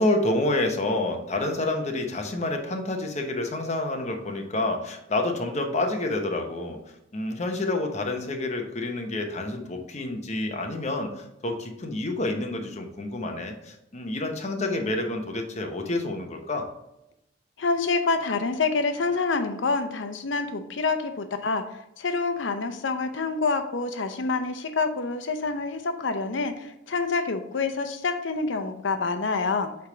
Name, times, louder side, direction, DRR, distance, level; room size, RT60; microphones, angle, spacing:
voice 1, 0.0-6.8 7.1-16.7, left 2 dB, 40° left, 4 dB, 0.9 m, -28 dB
voice 2, 17.6-21.6 22.0-29.7, left 4 dB, 75° left, 8 dB, 0.7 m, -27 dB
7.9 x 3.5 x 3.9 m, 0.84 s
head